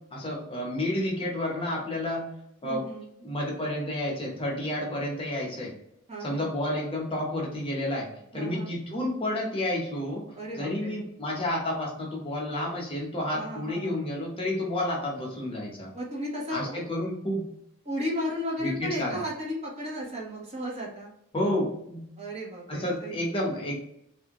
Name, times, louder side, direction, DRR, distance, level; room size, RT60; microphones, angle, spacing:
voice 1, 0.1-2.3 2.6-2.9 3.2-5.7 6.2-15.9 16.5-17.4 18.6-19.2 21.3-22.1 22.7-23.7, left 1 dB, 25° left, -2 dB, 0.8 m, -30 dB
voice 2, 2.6-3.1 6.1-6.5 8.3-8.7 10.3-11.0 13.3-13.9 15.9-16.8 17.8-21.1 22.2-23.2, equal, 30° right, -3 dB, 1.0 m, -34 dB
3.2 x 2.6 x 2.9 m, 0.75 s
head